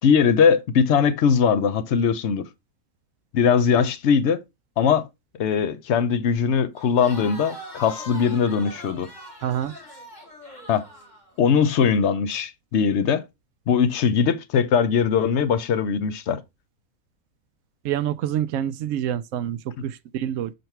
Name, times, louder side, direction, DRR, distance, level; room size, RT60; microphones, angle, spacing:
voice 1, 0.0-2.5 3.3-4.4 4.8-5.1 5.4-9.1 10.7-10.9 11.4-13.2 13.7-16.4, left 6 dB, 55° left, 0.9 m, -20 dB
Crowd, 6.8-11.7, left 1 dB, 30° left, 1.8 m, -42 dB
voice 2, 9.4-9.7 17.8-20.5, right 10 dB, 70° right, 0.9 m, -27 dB
6.8 x 4.0 x 4.4 m
omnidirectional pair, 1.6 m